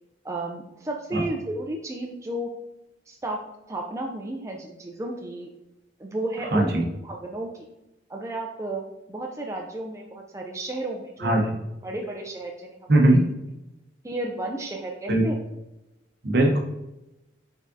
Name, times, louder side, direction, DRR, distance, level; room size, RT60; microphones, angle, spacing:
voice 1, 0.2-2.5 3.1-3.4 3.7-5.5 6.0-7.7 8.1-8.8 9.1-11.4 11.8-12.8 14.0-15.4, right 2 dB, 15° right, 1 dB, 0.4 m, -33 dB
voice 2, 6.5-6.8 11.2-11.5 12.9-13.3 15.1-15.2 16.2-16.6, right 1 dB, 60° right, 1 dB, 0.9 m, -19 dB
5.1 x 3.6 x 2.6 m, 0.96 s
head